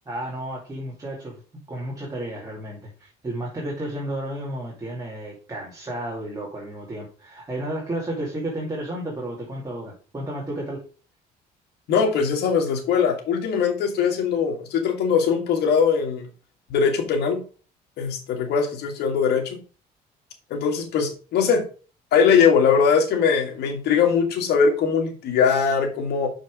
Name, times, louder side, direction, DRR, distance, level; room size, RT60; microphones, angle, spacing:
voice 1, 0.1-1.4 1.7-10.8, right 1 dB, 20° right, -4 dB, 2.6 m, -32 dB
voice 2, 11.9-16.3 16.7-17.4 18.0-19.6 20.5-21.6 22.1-26.3, left 6 dB, 75° left, 4 dB, 2.1 m, -21 dB
6.5 x 5.2 x 4.8 m, 0.37 s
cardioid pair, 110°, 17 cm